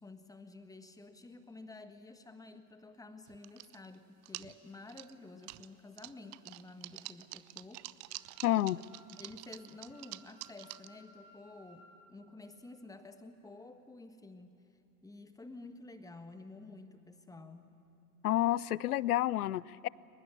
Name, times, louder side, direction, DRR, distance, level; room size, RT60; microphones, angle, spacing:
voice 1, 0.0-7.9 9.2-14.6 15.0-17.8, left 2 dB, 10° left, 8 dB, 1.5 m, -51 dB
sound 1, 3.3-4.0 4.2-5.7 6.0-10.9, right 20 dB, 35° right, 0.6 m, -47 dB
Wind instrument woodwind instrument, 8.1-11.8, equal, 70° right, 5.3 m, -62 dB
voice 2, 8.4-8.8 18.2-19.9, left 14 dB, 75° left, 23 dB, 0.6 m, -29 dB
23.0 x 20.0 x 9.8 m, 2.8 s
figure-of-eight pair, 80°, 46 cm